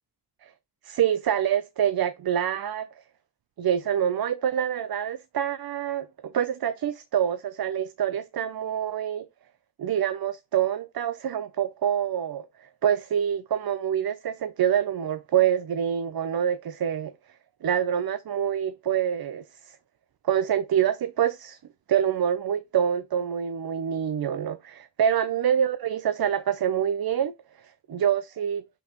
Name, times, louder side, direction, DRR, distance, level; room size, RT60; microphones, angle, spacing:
voice 1, 0.8-2.9 3.6-9.3 9.8-17.1 17.6-19.8 20.2-21.6 21.9-27.3 27.9-28.6, right 9 dB, 80° right, 0.6 m, -26 dB
6.0 x 5.4 x 3.0 m
wide cardioid pair, 70°, 36 cm